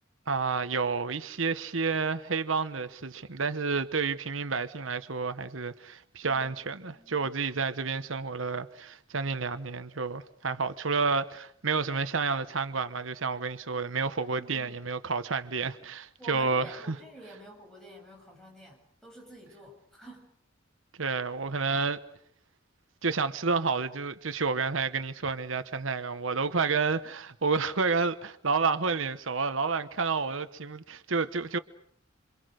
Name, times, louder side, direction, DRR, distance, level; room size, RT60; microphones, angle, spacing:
voice 1, 0.3-17.0 21.0-22.0 23.0-31.6, right 4 dB, 85° right, 1.1 m, -30 dB
voice 2, 6.9-7.3 14.3-14.8 16.2-20.3, right 1 dB, 5° left, 7.3 m, -49 dB
27.5 x 26.0 x 6.5 m
head